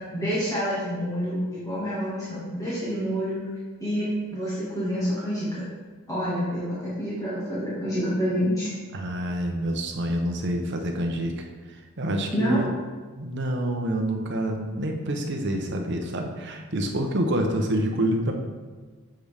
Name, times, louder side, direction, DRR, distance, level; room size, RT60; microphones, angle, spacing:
voice 1, 0.0-3.4 3.8-5.7 6.1-8.7 12.3-12.7, equal, 15° left, -10 dB, 1.8 m, -27 dB
voice 2, 8.9-12.7 13.2-18.3, right 1 dB, 50° right, 2 dB, 0.9 m, -27 dB
7.7 x 6.2 x 3.5 m, 1.4 s
head